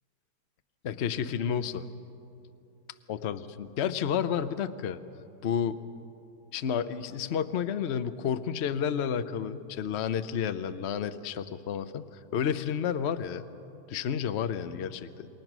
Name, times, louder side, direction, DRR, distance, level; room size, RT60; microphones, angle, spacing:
voice 1, 0.8-1.9 3.1-5.0 5.4-5.8 6.5-12.0 12.3-13.4 13.9-15.3, left 8 dB, 60° left, 11 dB, 0.7 m, -31 dB
27.5 x 22.5 x 6.1 m, 2.7 s
omnidirectional pair, 2.0 m